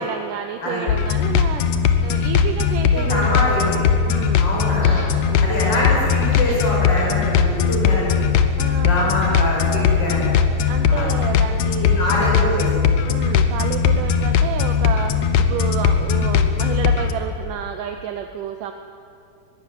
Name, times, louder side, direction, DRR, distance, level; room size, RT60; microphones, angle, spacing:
voice 1, 0.0-1.6 2.0-4.5 5.3-5.6 8.6-9.2 10.7-12.2 13.0-18.7, right 8 dB, 75° right, 6 dB, 2.4 m, -30 dB
sound 1, 0.9-17.1, left 6 dB, 65° left, 2.0 m, -19 dB
voice 2, 2.9-3.8 4.4-5.0 5.4-8.3 8.8-10.3 10.9-11.1 12.0-12.8, left 1 dB, 30° left, -4 dB, 6.0 m, -24 dB
sound 2, 3.0-8.1, right 1 dB, 10° right, 2.9 m, -39 dB
23.0 x 12.5 x 9.9 m, 2.6 s
omnidirectional pair, 3.8 m